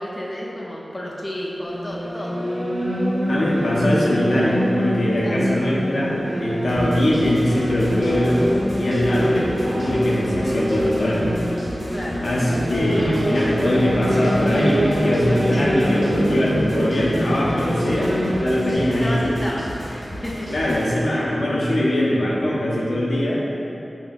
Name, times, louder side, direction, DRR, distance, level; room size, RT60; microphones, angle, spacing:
voice 1, 0.0-2.4 5.2-5.6 11.9-12.2 15.5-15.7 18.7-20.7, left 1 dB, 30° left, -4 dB, 0.5 m, -31 dB
sound 1, 1.6-18.7, equal, 10° right, 1.1 m, -24 dB
voice 2, 3.3-8.5 8.8-11.4 12.2-19.4 20.5-23.4, left 1 dB, 85° left, -6 dB, 0.7 m, -22 dB
sound 2, 6.7-20.9, equal, 60° right, 0.9 m, -35 dB
5.1 x 2.9 x 2.4 m, 3.0 s
wide cardioid pair, 65°, 0 cm